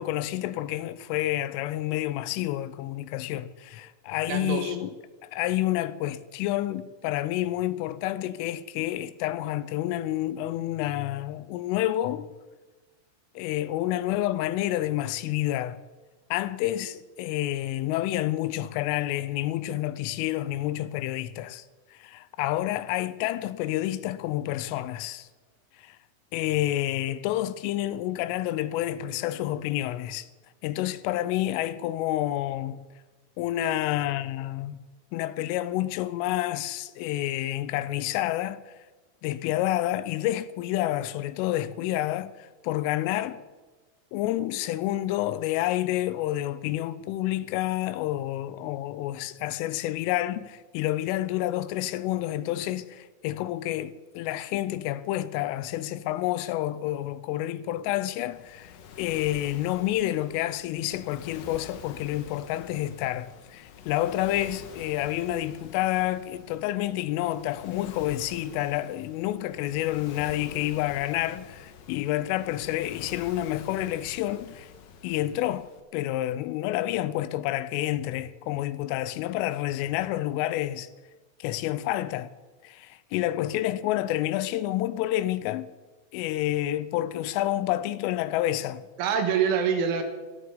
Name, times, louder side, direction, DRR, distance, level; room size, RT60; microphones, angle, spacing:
voice 1, 0.0-4.9 5.2-12.3 13.4-15.8 16.3-21.6 21.9-25.3 25.8-26.0 26.3-30.3 30.6-32.8 33.4-34.8 35.1-38.6 39.2-43.4 44.1-74.7 75.0-75.7 75.9-80.9 81.4-82.3 82.6-85.7 86.1-88.9, left 14 dB, 90° left, 3.3 m, -29 dB
voice 2, 4.3-4.8 89.0-90.0, right 7 dB, 80° right, 4.0 m, -25 dB
Waves surf, 58.3-75.8, left 7 dB, 70° left, 2.1 m, -47 dB
14.5 x 13.0 x 7.2 m
omnidirectional pair, 5.6 m